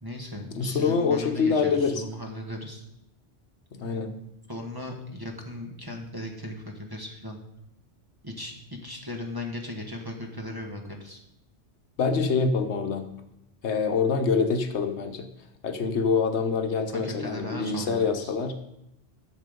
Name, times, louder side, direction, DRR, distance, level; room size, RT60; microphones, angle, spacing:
voice 1, 0.0-2.9 4.5-7.4 8.2-11.2 16.9-18.3, left 1 dB, 20° right, 2 dB, 1.5 m, -37 dB
voice 2, 0.5-2.0 3.7-4.1 12.0-13.1 13.6-15.3 15.6-18.6, left 5 dB, 75° left, 7 dB, 1.2 m, -25 dB
11.5 x 7.2 x 5.2 m, 0.84 s
omnidirectional pair, 1.2 m